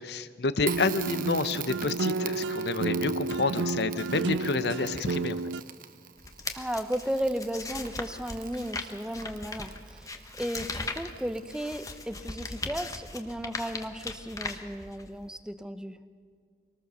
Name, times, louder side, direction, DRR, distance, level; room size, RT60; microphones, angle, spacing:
voice 1, 0.0-5.4, left 3 dB, 65° left, 13 dB, 0.8 m, -29 dB
Crackle, 0.6-12.2, right 9 dB, 50° right, 1.0 m, -44 dB
sound 1, 0.7-5.6, right 3 dB, 85° right, 0.5 m, -31 dB
sound 2, 6.2-15.2, left 3 dB, 20° left, 1.1 m, -39 dB
voice 2, 6.5-16.0, equal, 5° right, 11 dB, 0.7 m, -35 dB
24.0 x 19.0 x 6.8 m, 2.1 s
head